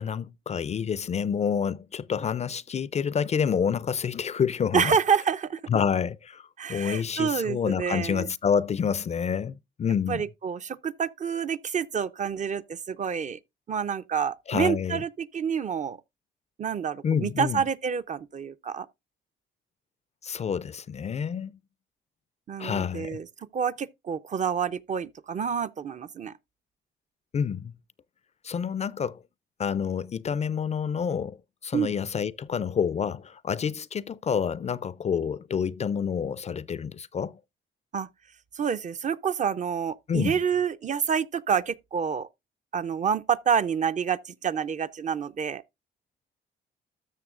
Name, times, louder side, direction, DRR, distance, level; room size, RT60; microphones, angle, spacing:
voice 1, 0.0-4.9 5.7-10.2 14.5-15.0 17.0-17.6 20.2-21.5 22.6-23.2 27.3-27.7 28.4-29.2 29.6-31.4 31.6-37.4 40.1-40.4, left 7 dB, 35° left, 0.4 m, -28 dB
voice 2, 4.7-5.6 6.6-8.3 10.1-13.4 13.7-16.0 16.6-18.9 22.5-26.3 31.7-31.9 37.9-38.1 38.5-42.3 42.7-45.6, right 7 dB, 40° right, 0.5 m, -28 dB
13.0 x 6.6 x 2.4 m
cardioid pair, 90°, 20 cm